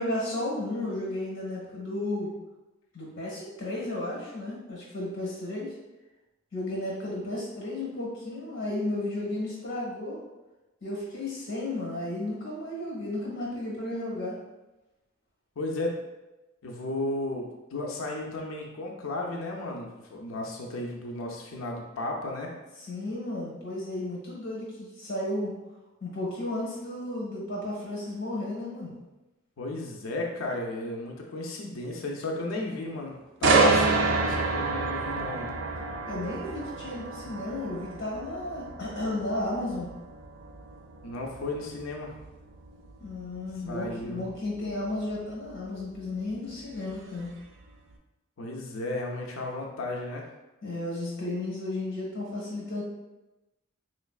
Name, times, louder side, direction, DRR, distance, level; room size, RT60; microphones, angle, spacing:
voice 1, 0.0-2.3 2.9-5.7 6.5-10.2 10.8-14.4 22.8-25.6 26.0-28.9 36.1-39.9 43.0-47.3 50.6-52.8, left 1 dB, 65° left, -3 dB, 1.4 m, -33 dB
voice 2, 15.6-15.9 16.6-22.5 29.6-35.5 41.0-42.1 43.7-44.2 48.4-50.2, left 2 dB, 85° left, 0 dB, 0.5 m, -34 dB
sound 1, 33.4-47.3 47.7-47.9, right 3 dB, 60° right, 0.4 m, -29 dB
3.8 x 3.1 x 2.4 m, 1.0 s
head